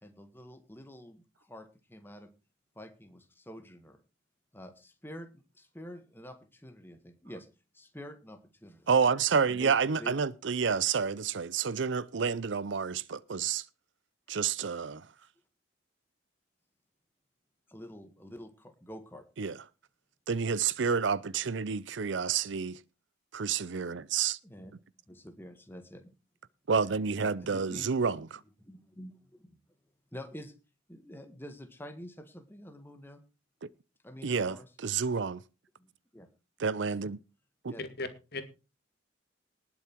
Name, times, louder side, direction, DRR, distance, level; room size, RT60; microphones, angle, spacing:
voice 1, 0.0-2.3 2.8-4.0 4.5-7.5 7.7-8.9 9.5-9.7 10.0-10.1 17.7-19.3 24.4-24.8 25.1-26.1 27.2-28.1 28.6-29.6 30.1-30.6 30.9-33.2 34.0-34.7 35.8-36.3 37.7-37.8, equal, 10° left, 1.6 m, -47 dB
voice 2, 8.9-13.7 14.3-15.1 19.4-19.6 20.3-22.8 23.3-24.4 26.7-28.3 33.6-33.7 34.2-35.4 36.6-37.2 37.6-37.7, right 6 dB, 65° right, 0.5 m, -29 dB
voice 3, 37.8-38.4, left 2 dB, 50° left, 2.1 m, -37 dB
19.5 x 7.2 x 4.6 m
head